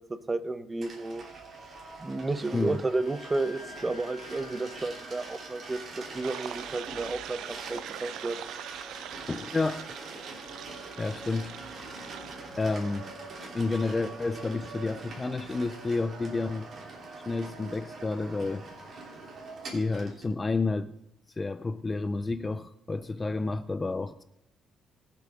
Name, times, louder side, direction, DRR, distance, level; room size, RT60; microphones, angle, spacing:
voice 1, 0.3-1.2 2.0-8.4, right 2 dB, 15° right, 12 dB, 0.7 m, -32 dB
sound 1, 0.8-20.3, right 3 dB, 40° right, 3.4 m, -43 dB
Wind instrument woodwind instrument, 2.8-10.3, left 3 dB, 70° left, 2.0 m, -54 dB
sound 2, 6.2-12.4, right 13 dB, 85° right, 0.4 m, -43 dB
voice 2, 9.3-9.8 11.0-11.5 11.9-12.0 12.6-13.1 13.5-16.7 17.3-18.7 19.7-20.9 21.4-24.2, left 3 dB, 20° left, 12 dB, 0.4 m, -30 dB
21.5 x 7.7 x 3.7 m, 0.81 s
cardioid pair, 150°, 0 cm